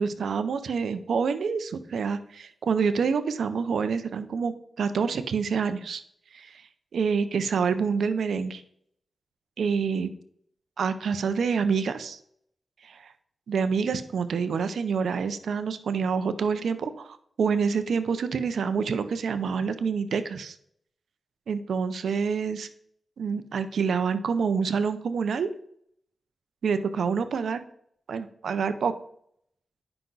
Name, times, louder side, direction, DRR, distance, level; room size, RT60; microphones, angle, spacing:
voice 1, 0.0-6.0 6.3-6.6 6.9-8.6 9.6-10.1 10.8-12.2 12.8-13.1 13.5-20.6 21.5-22.7 23.2-25.5 26.6-27.6 28.1-28.9, right 5 dB, 85° right, 11 dB, 0.7 m, -27 dB
10.5 x 5.8 x 4.0 m, 0.67 s
cardioid pair, 65°, 0 cm